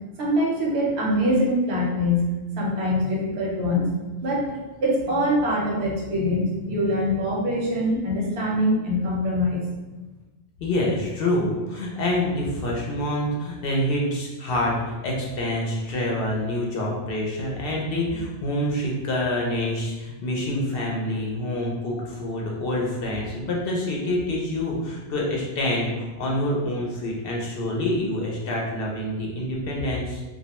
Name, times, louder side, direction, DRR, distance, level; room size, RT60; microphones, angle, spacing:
voice 1, 0.2-3.9 4.2-9.6, equal, 75° right, -3 dB, 0.9 m, -24 dB
voice 2, 10.6-30.2, left 1 dB, 65° left, -2 dB, 0.7 m, -26 dB
2.3 x 2.1 x 2.8 m, 1.2 s
omnidirectional pair, 1.1 m